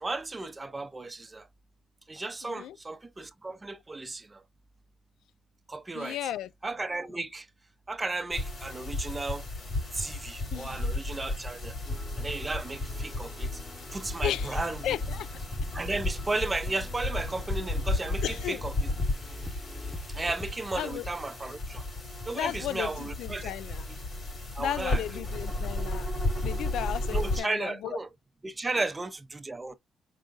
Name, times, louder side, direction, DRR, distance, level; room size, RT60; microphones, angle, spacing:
voice 1, 0.0-1.5 2.1-4.4 5.7-6.2 6.6-7.5 7.9-9.4 9.9-11.7 12.2-13.6 13.9-14.9 15.7-18.7 20.1-21.8 22.3-23.5 23.9-24.0 24.6-25.2 25.9-26.0 27.1-28.1 28.4-29.8, right 2 dB, 15° right, 0.5 m, -34 dB
voice 2, 2.4-2.8 5.9-6.5 10.5-10.8 14.2-14.6 14.8-15.3 18.2-18.6 20.8-21.0 22.3-22.9 23.2-23.8 24.6-26.1 26.4-27.9, left 11 dB, 85° left, 0.3 m, -34 dB
sound 1, 8.3-27.4, left 2 dB, 35° left, 2.3 m, -33 dB
sound 2, 11.8-20.5, left 1 dB, 5° left, 0.8 m, -47 dB
4.7 x 3.9 x 2.4 m
cardioid pair, 165°, 0 cm